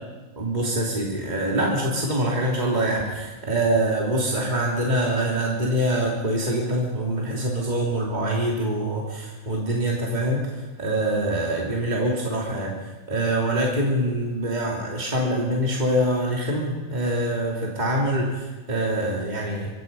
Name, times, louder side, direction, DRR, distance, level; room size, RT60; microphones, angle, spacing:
voice 1, 0.4-10.5 10.8-12.7 13.1-18.3 18.7-19.7, right 1 dB, 30° right, -3 dB, 3.0 m, -24 dB
24.5 x 24.0 x 5.5 m, 1.3 s
omnidirectional pair, 1.4 m